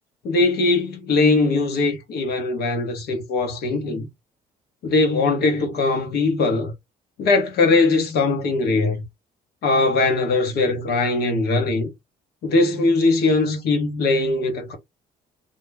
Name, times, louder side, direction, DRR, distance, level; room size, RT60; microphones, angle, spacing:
voice 1, 0.2-4.1 4.8-6.7 7.2-9.0 9.6-11.9 12.4-14.8, left 3 dB, 70° left, 1.2 m, -20 dB
2.8 x 2.0 x 3.4 m
cardioid pair, 110°, 17 cm